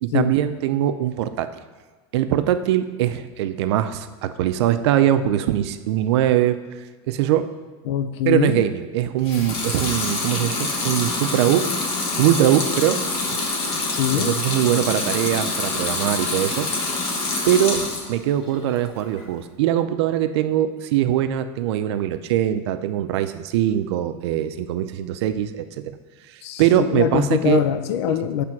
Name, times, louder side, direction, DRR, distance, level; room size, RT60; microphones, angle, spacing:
voice 1, 0.0-1.5 2.1-6.6 7.1-7.5 8.3-11.7 12.2-13.0 14.2-16.7 17.4-17.8 18.1-26.0 26.3-27.6 28.1-28.2, right 11 dB, 75° right, 10 dB, 0.5 m, -22 dB
voice 2, 7.9-8.6 13.9-14.4 26.4-28.4, left 10 dB, 80° left, 10 dB, 0.4 m, -23 dB
Water tap faucet / Sink (filling or washing) / Liquid, 9.2-18.1 18.5-19.3, left 3 dB, 45° left, 1.2 m, -26 dB
7.6 x 3.4 x 5.9 m, 1.4 s
supercardioid pair, 160°, 14 cm